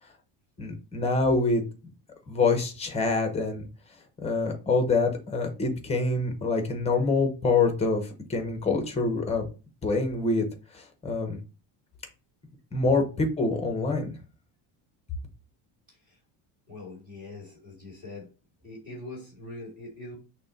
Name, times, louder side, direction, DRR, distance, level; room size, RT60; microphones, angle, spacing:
voice 1, 0.6-1.9 2.3-3.7 4.2-9.5 9.8-10.4 10.7-11.4 12.7-14.1, left 3 dB, 15° left, 5 dB, 0.7 m, -26 dB
voice 2, 16.7-18.3 18.6-20.2, left 2 dB, 20° right, -3 dB, 2.0 m, -42 dB
6.1 x 2.2 x 3.9 m, 0.32 s
cardioid pair, 175°, 40 cm